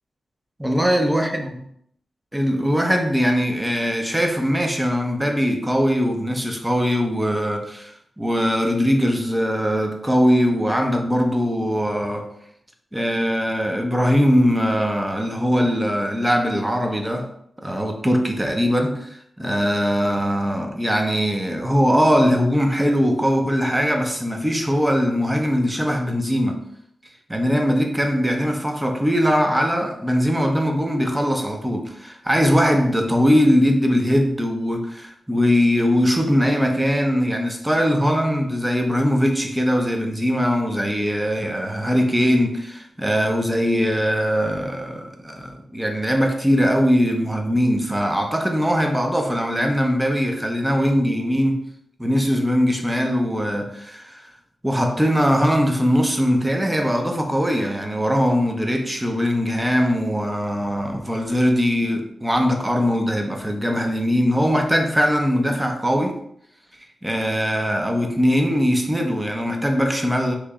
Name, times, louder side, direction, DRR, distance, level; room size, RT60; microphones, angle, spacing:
voice 1, 0.6-1.4 2.3-12.3 12.9-17.3 17.6-26.6 27.3-51.7 52.0-54.3 54.6-66.2 67.0-70.4, equal, 10° right, 0.5 m, -21 dB
3.0 x 2.8 x 3.5 m
wide cardioid pair, 130°, 0 cm